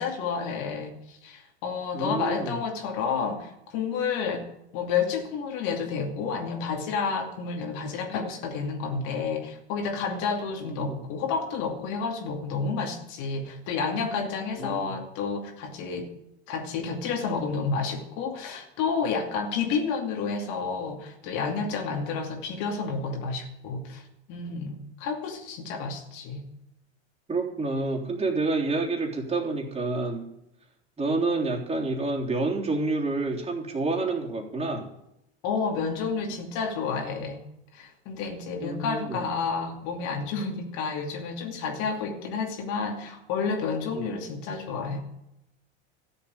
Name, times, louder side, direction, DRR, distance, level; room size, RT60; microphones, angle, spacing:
voice 1, 0.0-4.5 4.7-16.1 16.5-24.0 24.3-26.4 35.4-37.4 37.7-45.0, left 5 dB, 60° left, 2 dB, 2.7 m, -30 dB
voice 2, 1.9-2.6 10.6-11.0 14.6-14.9 27.3-30.3 31.0-34.9 38.6-39.3 43.9-44.2, right 3 dB, 20° right, -1 dB, 3.4 m, -28 dB
13.5 x 7.2 x 8.8 m, 0.85 s
hypercardioid pair, 90°, 33 cm